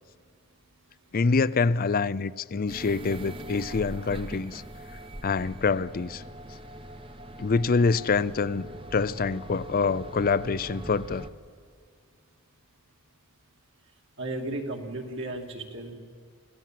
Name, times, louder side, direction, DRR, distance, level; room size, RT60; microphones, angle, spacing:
voice 1, 1.1-4.6 5.2-6.2 7.4-11.3, left 4 dB, 40° left, 18 dB, 0.5 m, -26 dB
sound 1, 2.7-11.3, right 1 dB, 25° right, 1.0 m, -42 dB
voice 2, 14.2-15.9, right 2 dB, 60° right, 2 dB, 2.4 m, -34 dB
25.5 x 16.0 x 7.6 m, 2.2 s
head